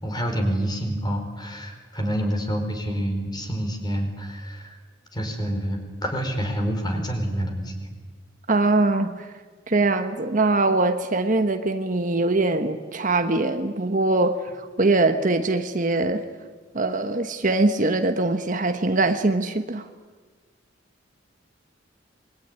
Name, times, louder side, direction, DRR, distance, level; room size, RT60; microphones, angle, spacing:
voice 1, 0.0-4.8 5.1-7.9, equal, 20° left, 4 dB, 4.7 m, -27 dB
voice 2, 8.5-9.3 9.7-16.2 16.7-19.9, right 2 dB, 45° right, 8 dB, 1.2 m, -22 dB
26.5 x 22.0 x 9.8 m, 1.5 s
head